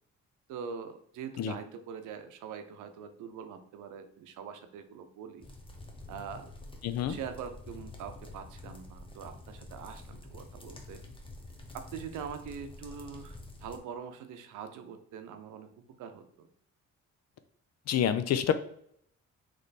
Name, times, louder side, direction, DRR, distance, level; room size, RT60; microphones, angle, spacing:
voice 1, 0.5-5.4 6.1-6.5 7.1-11.0 11.7-16.5, right 7 dB, 80° right, 8 dB, 0.7 m, -43 dB
sound 1, 5.4-13.8, left 2 dB, 15° left, 0.8 m, -48 dB
voice 2, 6.8-7.2 17.9-18.5, left 9 dB, 60° left, 11 dB, 0.5 m, -27 dB
3.3 x 3.2 x 4.0 m, 0.67 s
cardioid pair, 90°, 30 cm